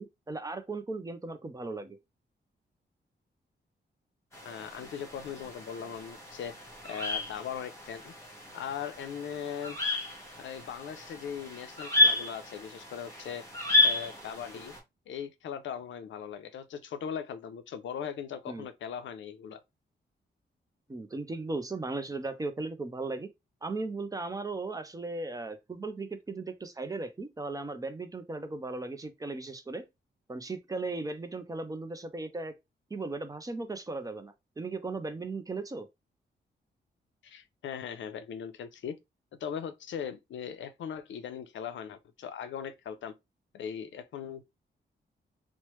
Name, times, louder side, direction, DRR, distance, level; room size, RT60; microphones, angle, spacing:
voice 1, 0.0-2.0 18.5-18.7 20.9-23.3 23.6-29.8 30.3-32.5 32.9-35.9, right 3 dB, 20° right, 0.4 m, -37 dB
sound 1, 4.3-14.8, left 1 dB, 15° left, 1.1 m, -32 dB
voice 2, 4.4-6.6 6.8-8.1 8.5-9.8 10.4-13.5 13.8-14.7 15.1-19.6 37.2-39.0 39.4-43.1 43.5-44.5, left 8 dB, 85° left, 0.5 m, -39 dB
3.0 x 2.1 x 3.0 m
wide cardioid pair, 140°, 19 cm